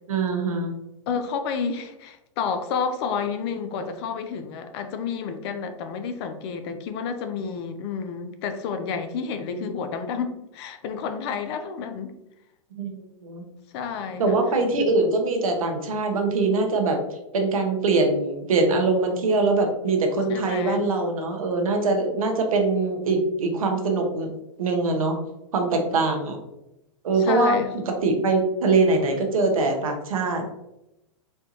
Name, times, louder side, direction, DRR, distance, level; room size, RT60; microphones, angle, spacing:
voice 1, 0.1-0.7 9.5-9.7 12.8-13.4 14.2-24.3 24.6-25.2 25.5-26.4 27.0-27.6 27.9-30.4, right 3 dB, 85° right, 3 dB, 0.9 m, -23 dB
voice 2, 1.1-12.1 13.7-14.4 14.7-14.9 20.3-20.8 27.2-27.7, left 6 dB, 50° left, 8 dB, 0.5 m, -30 dB
4.3 x 2.3 x 2.9 m, 0.89 s
hypercardioid pair, 125°, 17 cm